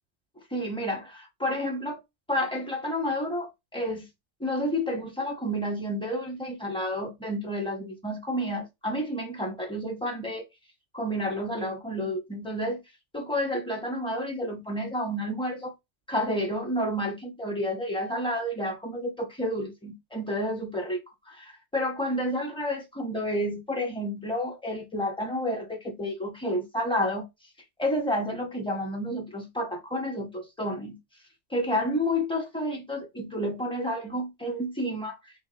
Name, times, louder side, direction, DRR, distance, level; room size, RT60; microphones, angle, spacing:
voice 1, 0.5-2.0 2.3-4.1 4.4-10.4 10.9-12.8 13.1-15.7 16.1-21.0 21.2-27.3 27.8-31.0 31.5-35.5, equal, 5° left, 1.1 m, -30 dB
4.6 x 3.3 x 2.9 m
omnidirectional pair, 1.2 m